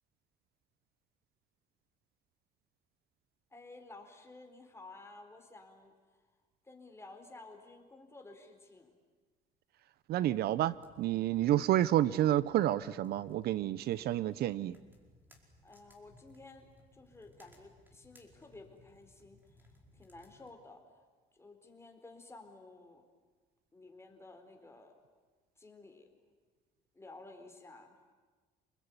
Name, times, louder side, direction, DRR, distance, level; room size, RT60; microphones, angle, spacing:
voice 1, 3.5-6.3 6.6-8.9 15.6-21.0 21.3-23.0 23.7-25.0 25.6-26.1 26.9-28.0, left 2 dB, 15° left, 4 dB, 4.5 m, -54 dB
voice 2, 10.1-14.8, right 13 dB, 70° right, 18 dB, 0.8 m, -29 dB
sound 1, 10.6-20.5, left 1 dB, 10° right, 5.0 m, -63 dB
29.0 x 20.5 x 9.8 m, 1.4 s
cardioid pair, 110°, 17 cm